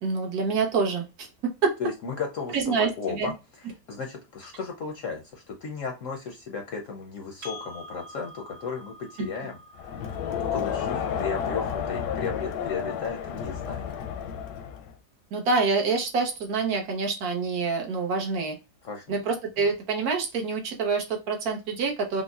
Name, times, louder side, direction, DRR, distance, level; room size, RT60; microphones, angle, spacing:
voice 1, 0.0-1.7 2.5-3.3 9.2-9.3 15.3-18.6 19.1-22.2, right 4 dB, 65° right, 2 dB, 1.2 m, -26 dB
voice 2, 1.8-3.3 3.9-9.6 9.9-10.0 10.3-13.9 18.8-19.2, left 5 dB, 65° left, 2 dB, 0.8 m, -34 dB
Percussion, 7.4-12.2, left 1 dB, 45° right, 1.0 m, -47 dB
Crowd, 9.8-15.0, left 8 dB, 85° left, 1.2 m, -31 dB
5.1 x 2.1 x 2.3 m, 0.27 s
omnidirectional pair, 1.8 m